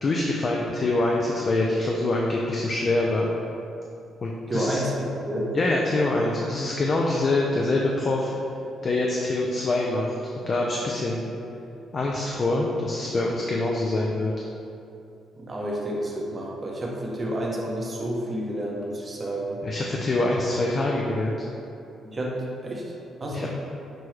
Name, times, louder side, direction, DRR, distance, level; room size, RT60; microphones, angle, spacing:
voice 1, 0.0-3.3 4.2-4.8 5.5-8.3 8.8-11.3 11.9-14.3 19.6-21.4 23.3-23.5, left 2 dB, 40° left, -2 dB, 0.4 m, -25 dB
voice 2, 4.5-5.5 15.4-19.6 22.0-22.8 23.2-23.5, right 1 dB, 30° right, -3 dB, 0.8 m, -30 dB
6.0 x 2.2 x 3.1 m, 2.7 s
cardioid pair, 90°, 0 cm